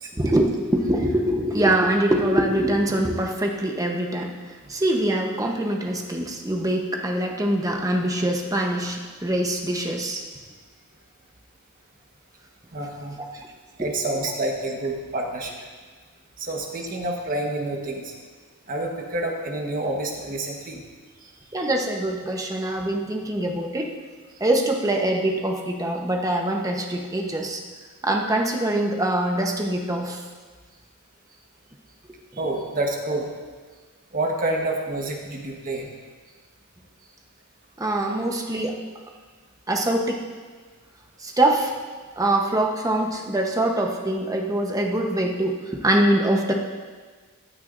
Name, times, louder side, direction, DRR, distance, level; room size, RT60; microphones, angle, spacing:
voice 1, 0.1-4.3 4.7-10.2 13.2-13.5 13.8-13.9 21.5-23.9 24.4-27.6 28.0-30.2 37.8-38.8 39.7-40.2 41.2-41.7 42.2-46.5, right 1 dB, 15° right, 1 dB, 0.9 m, -23 dB
voice 2, 12.7-13.2 13.8-15.6 16.4-18.1 18.7-20.8 32.4-33.3 34.1-35.9, right 2 dB, 40° right, 1 dB, 1.3 m, -28 dB
14.5 x 9.2 x 2.6 m, 1.5 s
head